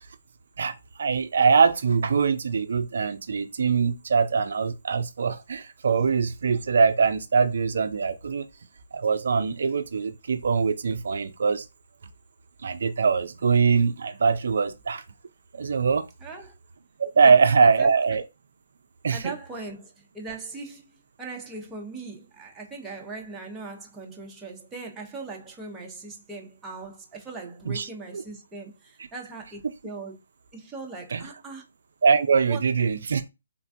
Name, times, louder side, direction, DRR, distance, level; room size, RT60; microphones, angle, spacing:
voice 1, 0.6-8.5 8.9-11.7 12.6-15.0 15.5-16.1 17.0-18.2 19.0-19.2 27.7-27.9 28.1-28.2 31.1-31.2 32.0-33.3, right 5 dB, 60° right, 0.4 m, -22 dB
voice 2, 16.2-16.5 17.2-17.3 17.6-18.2 19.1-30.2 30.5-31.6 32.5-32.6, right 3 dB, 10° right, 0.6 m, -40 dB
3.3 x 2.1 x 2.6 m
hypercardioid pair, 155°, 0 cm